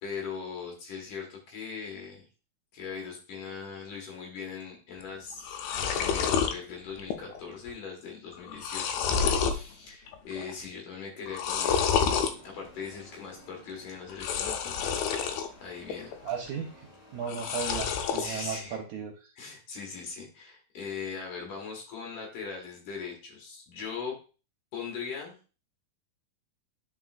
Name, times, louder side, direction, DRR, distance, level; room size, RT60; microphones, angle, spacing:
voice 1, 0.0-2.3 2.7-15.3 15.6-16.1 18.2-18.8 19.3-24.2 24.7-25.4, left 5 dB, 65° left, 0 dB, 3.0 m, -40 dB
sound 1, 5.0-5.1 5.3-6.5 7.0-7.4 7.7-7.8 8.3-9.6 10.1-10.5 11.3-12.3 14.1-15.5 15.9-16.5 17.2-18.3, left 6 dB, 80° left, 2.5 m, -28 dB
sound 2, 11.4-14.3 14.7-17.9, left 1 dB, 40° left, 3.1 m, -54 dB
voice 2, 16.2-16.8 17.1-19.1, right 6 dB, 75° right, 2 dB, 1.9 m, -35 dB
10.5 x 4.5 x 2.5 m, 0.35 s
omnidirectional pair, 4.3 m